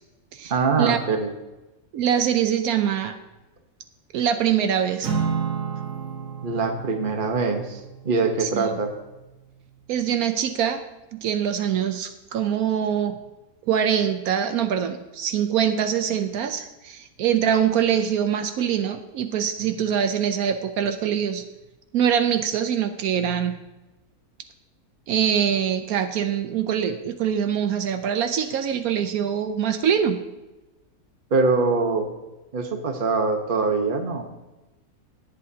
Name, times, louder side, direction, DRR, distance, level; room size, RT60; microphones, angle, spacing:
voice 1, 0.5-1.3 6.4-7.8 8.0-8.9 31.3-32.1 32.5-34.2, right 4 dB, 40° right, 5 dB, 1.2 m, -23 dB
voice 2, 1.9-3.2 4.1-5.1 8.4-8.8 9.9-10.8 11.1-13.2 13.7-21.4 21.9-23.6 25.1-30.2, right 8 dB, 80° right, 8 dB, 1.1 m, -24 dB
Acoustic guitar / Strum, 5.0-9.5, right 6 dB, 65° right, 1.8 m, -32 dB
18.0 x 8.4 x 2.8 m, 1.1 s
omnidirectional pair, 1.5 m